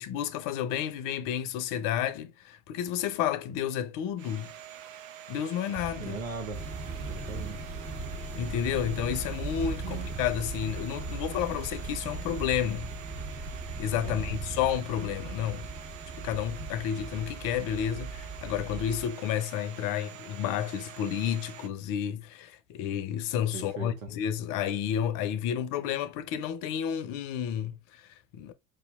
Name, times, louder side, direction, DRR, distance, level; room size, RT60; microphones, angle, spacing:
voice 1, 0.0-4.5 5.3-6.2 8.3-12.9 13.8-15.7 16.2-28.5, left 10 dB, 55° left, 0.6 m, -31 dB
Domestic sounds home sounds, 4.2-21.7, right 10 dB, 55° right, 0.7 m, -46 dB
sound 1, 5.7-14.7, right 3 dB, 10° right, 0.3 m, -43 dB
voice 2, 6.0-6.6 7.0-7.6 9.8-10.1 14.0-14.4 23.5-23.9, right 4 dB, 80° right, 1.3 m, -38 dB
sound 2, 6.5-19.1, right 3 dB, 30° right, 1.5 m, -39 dB
4.8 x 2.8 x 2.4 m
hypercardioid pair, 75°, 40 cm